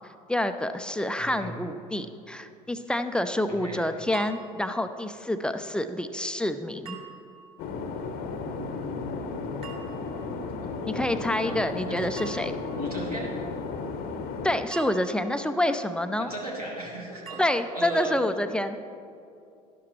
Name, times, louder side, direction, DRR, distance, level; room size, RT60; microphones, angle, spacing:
voice 1, 0.3-7.0 10.8-12.6 14.4-16.3 17.4-18.8, left 1 dB, 5° left, 9 dB, 0.5 m, -28 dB
voice 2, 1.2-1.5 3.5-3.8 8.6-9.3 10.6-12.1 12.8-13.3 16.2-18.1, right 1 dB, 90° right, -3 dB, 1.8 m, -37 dB
sound 1, 4.1-4.8 6.8-7.6 9.6-10.3 12.2-12.8 14.7-15.6 17.3-18.0, right 8 dB, 30° right, 1.9 m, -45 dB
sound 2, 7.6-14.6, left 4 dB, 55° left, 0.9 m, -34 dB
12.0 x 11.5 x 3.2 m, 2.5 s
figure-of-eight pair, 65°, 19 cm